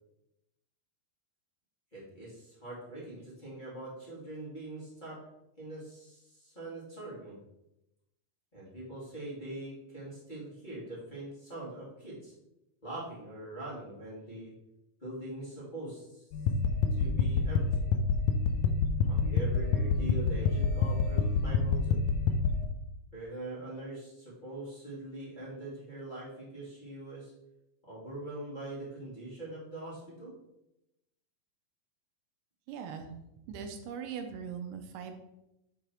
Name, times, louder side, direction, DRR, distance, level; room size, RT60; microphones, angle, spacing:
voice 1, 1.9-5.2 5.6-7.4 8.5-12.3 12.8-14.5 15.0-16.3 16.9-17.6 19.0-22.0 23.1-27.3 27.9-30.3, right 1 dB, 15° left, -9 dB, 2.1 m, -42 dB
sound 1, 16.3-22.6, left 4 dB, 75° left, 1.9 m, -27 dB
voice 2, 32.7-33.1 33.5-35.2, right 7 dB, 80° right, 5 dB, 2.3 m, -40 dB
9.3 x 4.0 x 4.3 m, 0.87 s
omnidirectional pair, 3.8 m